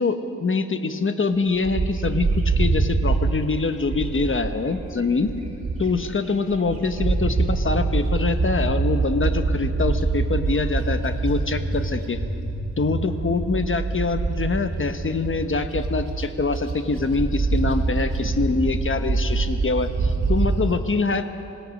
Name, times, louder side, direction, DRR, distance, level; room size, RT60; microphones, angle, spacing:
voice 1, 0.0-5.3 5.8-12.2 12.8-21.2, left 4 dB, 40° left, 8 dB, 1.2 m, -24 dB
Bird, 1.7-6.1 6.5-20.7, right 3 dB, 55° right, 4.5 m, -25 dB
26.0 x 17.5 x 6.6 m, 2.9 s
wide cardioid pair, 115°, 32 cm